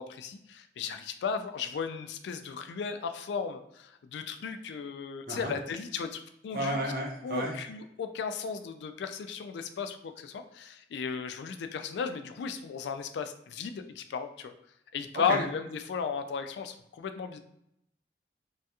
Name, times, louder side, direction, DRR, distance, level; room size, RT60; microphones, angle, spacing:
voice 1, 0.0-6.8 7.2-14.5 14.9-17.4, left 6 dB, 80° left, 8 dB, 0.3 m, -35 dB
voice 2, 6.5-7.5 15.3-15.4, right 1 dB, 50° right, 0 dB, 0.7 m, -32 dB
3.2 x 2.3 x 2.8 m, 0.79 s
head